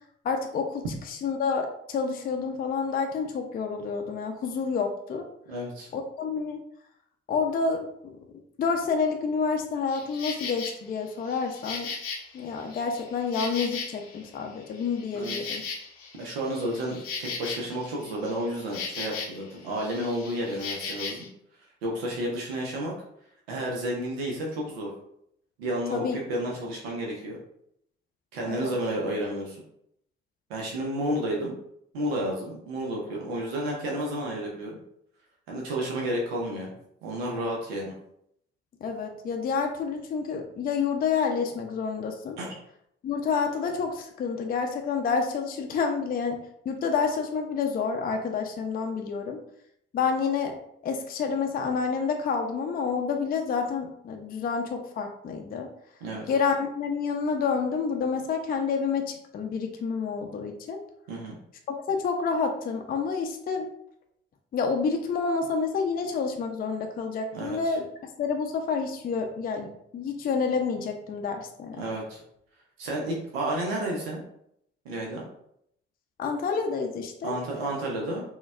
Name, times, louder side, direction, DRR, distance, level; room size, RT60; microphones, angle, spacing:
voice 1, 0.2-0.8 1.2-5.3 5.9-6.6 7.3-7.9 8.6-11.9 12.3-15.6 25.9-26.2 28.5-28.7 38.8-42.4 43.0-49.4 49.9-50.6 50.8-55.7 56.3-60.8 61.9-63.7 64.5-67.8 68.2-71.8 76.2-77.3, left 5 dB, 30° left, 3 dB, 0.5 m, -28 dB
voice 2, 5.5-5.9 15.1-15.6 16.2-21.3 21.8-22.9 23.5-24.9 25.6-27.4 28.3-29.6 30.5-31.5 31.9-34.8 35.5-36.7 37.0-37.9 42.4-42.6 56.0-56.3 61.1-61.4 67.3-67.8 71.8-72.2 72.8-74.2 74.8-75.2 77.2-78.2, right 1 dB, 80° right, -2 dB, 0.7 m, -31 dB
Insect, 9.9-10.7 11.2-14.3 14.6-19.5 19.7-21.3, left 5 dB, 80° left, 0.6 m, -37 dB
3.9 x 2.3 x 2.3 m, 0.73 s
figure-of-eight pair, 50°, 31 cm